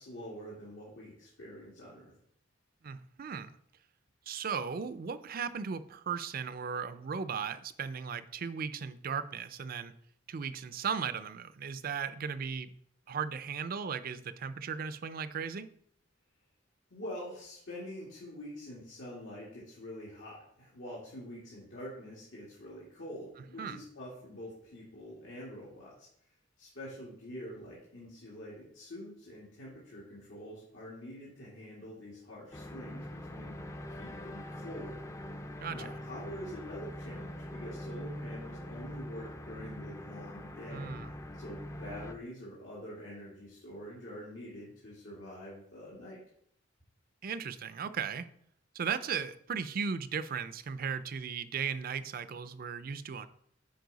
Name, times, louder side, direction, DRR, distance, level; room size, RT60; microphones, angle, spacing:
voice 1, 0.0-2.1 16.9-26.1 26.6-33.6 33.9-35.0 35.7-46.2, equal, 85° left, -6 dB, 2.1 m, -46 dB
voice 2, 2.8-3.6 4.3-9.9 10.3-12.7 13.1-15.7 23.6-23.8 35.6-35.9 40.7-41.1 47.2-48.3 48.7-53.3, right 6 dB, 50° right, 13 dB, 0.4 m, -36 dB
sound 1, 32.5-42.1, left 1 dB, 15° left, 0.4 m, -43 dB
9.4 x 4.5 x 4.0 m, 0.68 s
head